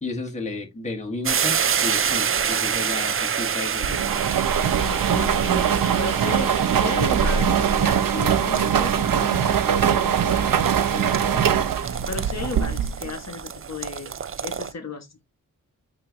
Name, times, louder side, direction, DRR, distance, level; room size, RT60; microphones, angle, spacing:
voice 1, 0.0-4.1, left 3 dB, 20° left, 1.6 m, -32 dB
sound 1, 1.2-14.7, right 7 dB, 40° right, 0.5 m, -29 dB
sound 2, 3.8-13.1, right 8 dB, 80° right, 0.8 m, -22 dB
voice 2, 4.8-15.1, left 4 dB, 50° left, 1.2 m, -35 dB
8.7 x 2.9 x 3.7 m
wide cardioid pair, 145°, 34 cm